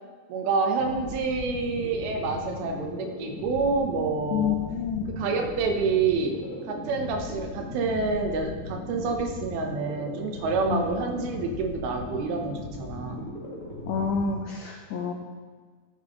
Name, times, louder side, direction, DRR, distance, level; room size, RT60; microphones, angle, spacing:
voice 1, 0.3-4.6 5.1-6.4 6.7-13.3, right 4 dB, 80° right, 4 dB, 2.7 m, -28 dB
sound 1, 0.8-14.4, left 2 dB, 60° left, 0.8 m, -38 dB
voice 2, 4.3-5.0 10.7-10.9 13.9-15.1, left 6 dB, 85° left, 1 dB, 1.7 m, -28 dB
12.0 x 7.0 x 3.0 m, 1.5 s
omnidirectional pair, 4.5 m